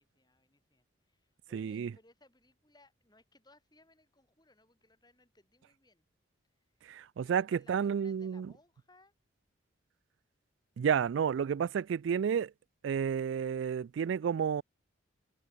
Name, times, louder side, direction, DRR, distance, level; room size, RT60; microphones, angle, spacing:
voice 1, 0.0-6.1 7.2-9.1, left 2 dB, 20° left, 7.7 m, -65 dB
voice 2, 1.5-1.9 6.8-8.5 10.8-12.5 12.8-14.6, right 7 dB, 75° right, 0.3 m, -31 dB
head